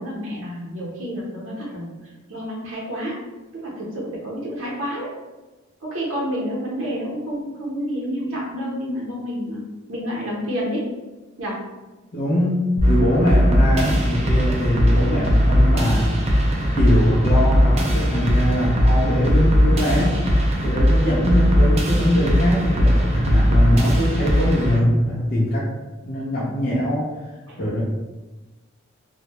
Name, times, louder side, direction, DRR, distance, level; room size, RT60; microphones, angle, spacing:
voice 1, 0.0-1.9 2.3-3.2 3.5-5.1 5.8-9.6 9.9-10.8 11.4-11.6 12.8-13.0 15.0-15.2 27.5-27.6, equal, 75° right, -4 dB, 0.7 m, -29 dB
voice 2, 12.1-16.2 16.8-20.2 20.6-25.7 26.1-27.1 27.6-27.8, equal, 45° left, -8 dB, 0.5 m, -22 dB
sound 1, 12.8-24.8, equal, 30° right, 0.3 m, -18 dB
2.1 x 2.0 x 2.8 m, 1.2 s
head